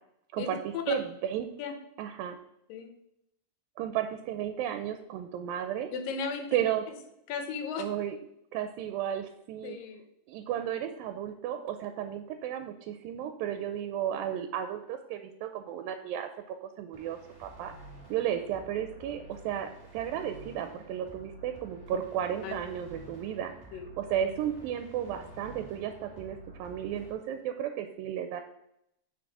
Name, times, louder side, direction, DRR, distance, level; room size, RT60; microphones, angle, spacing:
voice 1, 0.3-1.5 2.0-2.4 3.8-5.9 6.5-6.8 7.8-8.2 8.5-9.8 10.3-17.7 18.1-28.4, right 10 dB, 85° right, 8 dB, 2.3 m, -34 dB
voice 2, 5.9-6.6 7.3-7.8 9.6-10.0 22.4-22.5 23.7-23.9, left 6 dB, 75° left, 6 dB, 2.7 m, -35 dB
sound 1, 16.9-27.1, right 1 dB, 15° right, 0.9 m, -50 dB
8.7 x 5.7 x 4.7 m, 0.79 s
omnidirectional pair, 4.1 m